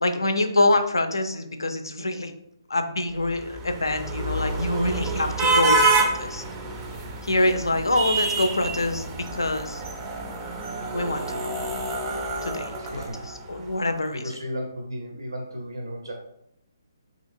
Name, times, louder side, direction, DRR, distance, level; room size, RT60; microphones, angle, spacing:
voice 1, 0.0-2.3 2.7-6.4 7.2-9.8 10.9-11.6 12.4-13.0 13.5-14.2, left 2 dB, 80° left, 7 dB, 0.4 m, -25 dB
sound 1, 3.3-13.6, right 3 dB, 20° right, 0.3 m, -27 dB
voice 2, 12.7-13.2 14.1-16.1, equal, 80° right, 1 dB, 0.5 m, -34 dB
2.8 x 2.8 x 2.5 m, 0.76 s
figure-of-eight pair, 140°, 2 cm